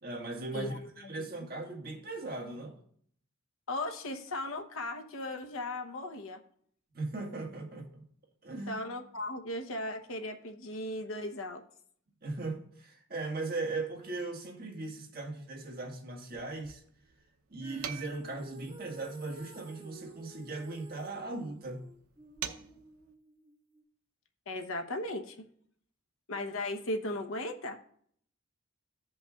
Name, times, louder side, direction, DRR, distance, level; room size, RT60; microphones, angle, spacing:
voice 1, 0.0-2.8 6.9-8.0 8.4-8.8 12.2-16.8 17.5-21.9, right 2 dB, 45° right, 1.7 m, -38 dB
voice 2, 0.5-1.5 3.7-6.4 8.7-11.6 24.5-25.4 26.3-27.8, left 1 dB, 75° left, 0.9 m, -37 dB
sound 1, 16.3-23.1, right 9 dB, 90° right, 0.7 m, -47 dB
Female singing, 17.6-23.8, right 2 dB, 25° right, 1.3 m, -52 dB
15.5 x 5.4 x 2.4 m
head